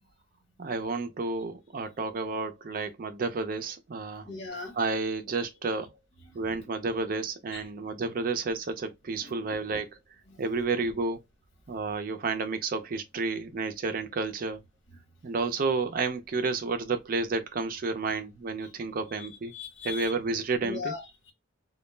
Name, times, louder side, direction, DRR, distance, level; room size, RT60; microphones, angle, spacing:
voice 1, 0.6-4.3 4.7-6.0 6.3-10.0 10.4-11.2 11.7-14.6 15.2-19.5 19.8-20.9, right 3 dB, 45° right, 0.4 m, -31 dB
voice 2, 4.3-4.7 6.2-6.5 7.5-7.9 9.2-9.5 19.2-19.3 19.5-20.1 20.6-21.3, left 5 dB, 80° left, 1.2 m, -39 dB
2.2 x 2.1 x 3.1 m
head